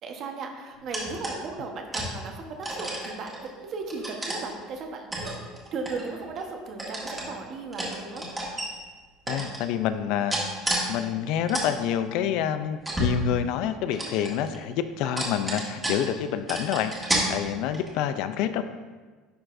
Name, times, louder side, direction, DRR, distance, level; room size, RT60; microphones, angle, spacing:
voice 1, 0.0-8.2, right 4 dB, 45° right, 3 dB, 1.1 m, -36 dB
sound 1, 0.9-1.5 1.9-2.1 2.6-3.5 3.9-4.4 5.1-6.4 6.8-7.3 7.7-8.6 9.3-9.6 10.3-10.8 11.2-11.7 12.1-12.2 12.8-13.6 13.9-14.6 15.0-16.2 16.5-17.2 17.7-18.0, right 1 dB, 15° right, 1.7 m, -30 dB
voice 2, 9.3-10.3 10.9-18.6, left 9 dB, 70° left, 11 dB, 0.4 m, -28 dB
10.0 x 4.7 x 2.5 m, 1.4 s
supercardioid pair, 125°, 0 cm